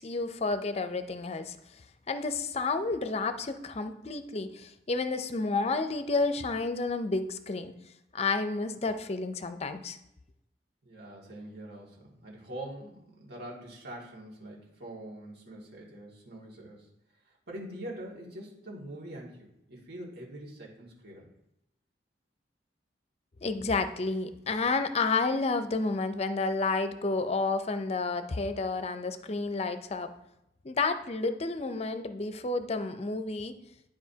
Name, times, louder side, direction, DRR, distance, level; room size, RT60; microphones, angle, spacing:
voice 1, 0.0-1.6 2.1-7.7 8.1-10.0 23.4-30.1 30.6-33.6, left 3 dB, 35° left, 10 dB, 0.5 m, -30 dB
voice 2, 10.8-16.9 17.3-21.3, right 1 dB, 65° right, -3 dB, 2.1 m, -44 dB
11.0 x 4.9 x 2.8 m, 0.86 s
head